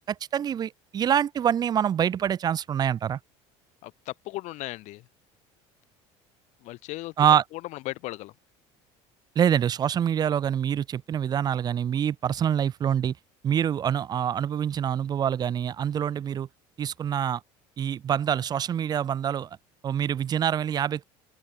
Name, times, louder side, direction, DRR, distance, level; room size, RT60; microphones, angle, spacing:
voice 1, 0.0-3.2 7.2-7.4 9.4-13.2 13.4-16.5 16.8-17.4 17.8-19.5 19.8-21.0, right 9 dB, 30° right, 0.6 m, -25 dB
voice 2, 3.8-5.0 6.6-7.1 7.5-7.6 7.8-8.3, left 19 dB, 65° left, 3.3 m, -36 dB
cardioid pair, 125°, 13 cm